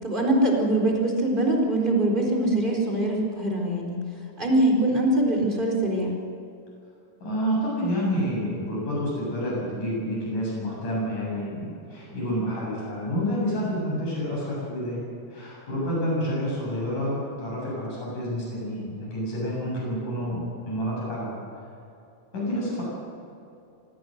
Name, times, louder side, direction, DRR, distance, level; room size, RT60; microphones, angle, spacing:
voice 1, 0.0-4.0 4.4-6.2, right 1 dB, 15° right, 0 dB, 4.2 m, -23 dB
voice 2, 7.2-15.0 15.3-21.7 22.3-22.8, equal, 90° left, -5 dB, 9.5 m, -29 dB
26.0 x 18.5 x 6.7 m, 2.6 s
omnidirectional pair, 3.5 m